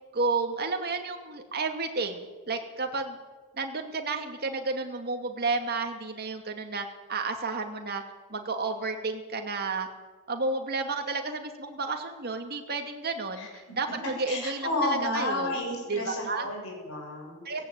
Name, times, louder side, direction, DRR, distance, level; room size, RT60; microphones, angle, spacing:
voice 1, 0.1-3.2 3.6-8.0 8.3-9.9 10.3-15.6 15.9-16.5 17.4-17.6, right 3 dB, 45° right, 4 dB, 2.5 m, -31 dB
voice 2, 14.3-17.6, left 1 dB, 65° left, 0 dB, 6.7 m, -31 dB
17.5 x 17.0 x 9.2 m, 1.3 s
head